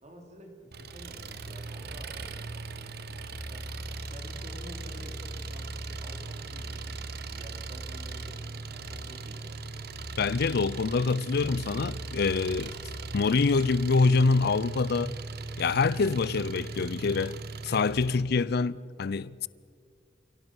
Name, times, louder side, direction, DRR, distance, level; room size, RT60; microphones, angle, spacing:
voice 1, 0.0-2.2 2.7-3.2 3.5-3.8 4.1-9.6, right 1 dB, 40° right, 3.6 m, -50 dB
Engine, 0.7-18.2, right 3 dB, 55° right, 1.0 m, -39 dB
voice 2, 10.2-12.8 13.1-15.1 15.6-17.4 17.6-19.5, left 4 dB, 60° left, 0.5 m, -25 dB
29.5 x 17.5 x 6.3 m
head